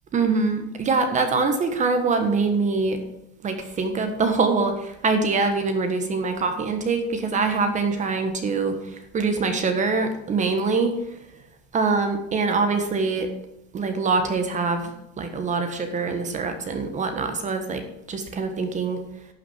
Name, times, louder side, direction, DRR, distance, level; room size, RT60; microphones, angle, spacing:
voice 1, 0.1-3.0 3.4-8.8 9.1-10.9 11.7-13.3 13.7-17.8 18.1-19.0, right 4 dB, 20° right, 7 dB, 1.5 m, -24 dB
11.5 x 6.0 x 7.8 m, 0.85 s
supercardioid pair, 135°, 36 cm